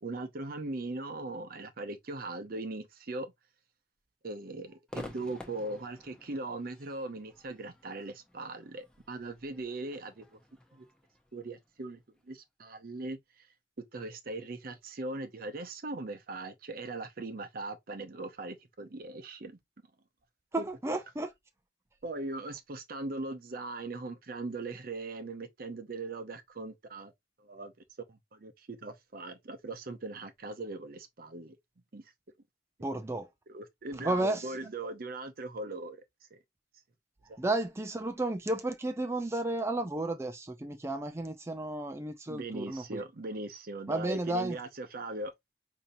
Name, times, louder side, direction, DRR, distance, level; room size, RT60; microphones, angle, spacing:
voice 1, 0.0-3.3 4.2-10.4 10.7-10.9 11.3-13.5 13.9-19.6 20.6-20.7 22.0-27.1 27.4-27.7 28.1-31.6 31.9-32.1 33.5-36.0 36.3-36.4 37.3-37.4 42.3-45.3, right 2 dB, 55° right, 0.7 m, -40 dB
Crowd / Fireworks, 4.9-12.2, left 1 dB, 5° left, 0.8 m, -51 dB
voice 2, 20.5-21.3 32.8-33.3 34.0-34.5 37.4-43.0 43.9-44.6, right 2 dB, 15° right, 0.4 m, -33 dB
5.3 x 2.8 x 2.6 m
head